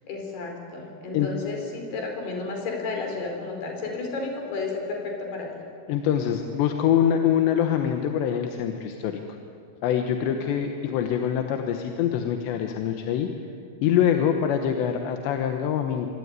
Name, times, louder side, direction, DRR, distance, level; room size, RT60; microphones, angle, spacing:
voice 1, 0.1-5.6 10.4-10.5, left 3 dB, 55° left, 2 dB, 6.5 m, -32 dB
voice 2, 5.9-9.2 9.8-13.3 13.8-16.1, left 9 dB, 70° left, 5 dB, 3.2 m, -24 dB
25.5 x 24.5 x 9.6 m, 2.4 s
omnidirectional pair, 5.6 m